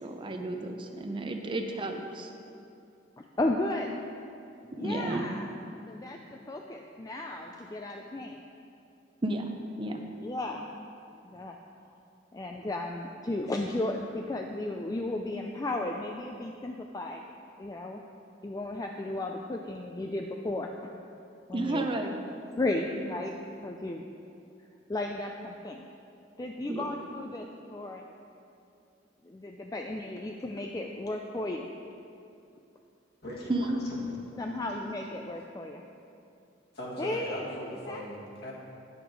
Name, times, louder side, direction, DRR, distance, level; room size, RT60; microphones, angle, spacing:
voice 1, 0.0-2.3 4.8-5.4 9.2-9.4 9.8-10.0 21.5-22.2 22.9-23.0 26.7-26.9 33.5-33.8, right 2 dB, 25° right, 4 dB, 0.6 m, -32 dB
voice 2, 3.2-3.9 4.8-5.5 5.9-8.4 10.2-10.7 11.2-11.6 12.3-17.2 17.6-18.0 18.4-20.7 21.5-21.9 22.6-23.3 23.6-24.1 24.9-25.8 26.4-28.0 29.2-31.7 34.4-35.8 37.0-38.0, left 2 dB, 20° left, 2 dB, 0.4 m, -34 dB
voice 3, 33.2-34.2 36.7-38.5, equal, 55° left, -4 dB, 2.0 m, -39 dB
10.5 x 7.9 x 4.6 m, 2.6 s
head